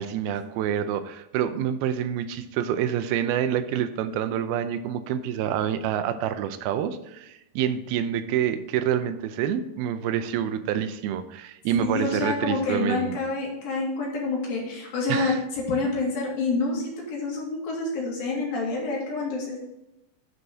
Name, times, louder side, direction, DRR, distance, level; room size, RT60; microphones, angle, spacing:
voice 1, 0.0-13.2 15.1-15.4, right 9 dB, 90° right, 10 dB, 2.6 m, -27 dB
voice 2, 11.8-19.6, left 3 dB, 70° left, -2 dB, 4.1 m, -28 dB
9.6 x 6.4 x 4.1 m, 0.91 s
omnidirectional pair, 4.4 m